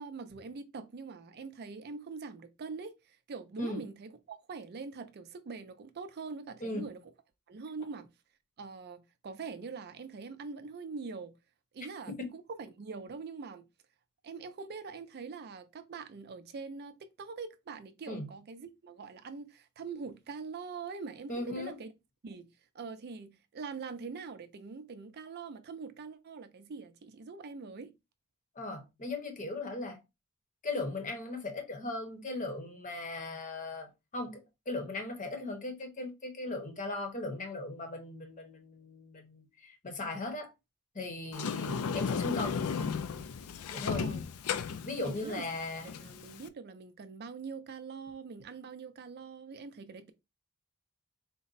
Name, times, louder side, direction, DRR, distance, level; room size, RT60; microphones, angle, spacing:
voice 1, 0.0-7.0 7.5-8.1 8.6-11.3 11.7-13.6 14.2-21.9 22.2-22.5 22.7-27.9 43.9-44.2 45.0-45.5 45.8-50.1, right 4 dB, 45° right, 0.4 m, -43 dB
voice 2, 21.3-21.7 28.6-30.0 30.6-40.5 40.9-42.6 43.7-44.0 44.8-45.9, left 2 dB, 35° left, 0.9 m, -38 dB
Sliding door, 41.3-46.5, left 6 dB, 80° left, 0.4 m, -35 dB
3.9 x 2.1 x 4.0 m
head